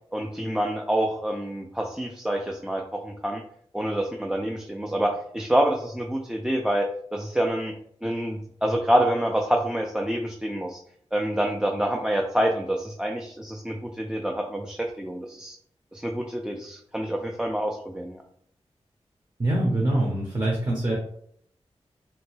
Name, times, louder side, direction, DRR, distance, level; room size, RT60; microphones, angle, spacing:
voice 1, 0.1-3.4 3.7-7.7 8.0-10.8 11.1-15.6 15.9-18.2, right 1 dB, 5° right, 1 dB, 0.3 m, -27 dB
voice 2, 19.4-20.9, right 1 dB, 35° right, -3 dB, 0.8 m, -24 dB
2.9 x 2.1 x 3.1 m, 0.66 s
cardioid pair, 55°, 11 cm